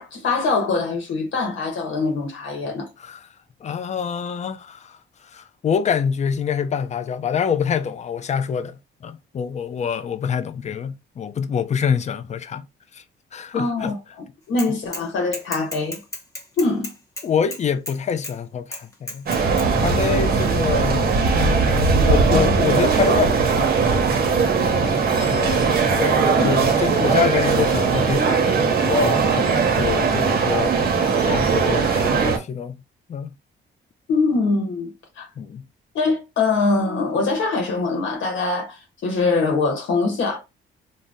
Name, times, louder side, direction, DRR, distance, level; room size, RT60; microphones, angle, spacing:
voice 1, 0.0-2.9 13.5-14.0 14.5-16.0 16.6-16.9 26.4-26.6 34.1-34.9 35.2-35.3 35.9-40.4, left 3 dB, 70° left, 1.0 m, -23 dB
voice 2, 3.6-12.6 12.9-13.0 13.3-13.9 17.2-19.3 19.8-23.7 24.8-25.7 26.0-30.8 31.2-32.7 33.1-33.3 35.4-35.6, left 7 dB, 35° left, 0.4 m, -26 dB
Bicycle / Mechanisms, 14.6-15.1 15.3-18.0 18.2-18.3 18.7-19.7, left 1 dB, 15° left, 0.9 m, -33 dB
sound 1, 19.3-32.4, right 5 dB, 50° right, 0.8 m, -19 dB
2.6 x 2.0 x 3.4 m
cardioid pair, 90°, 20 cm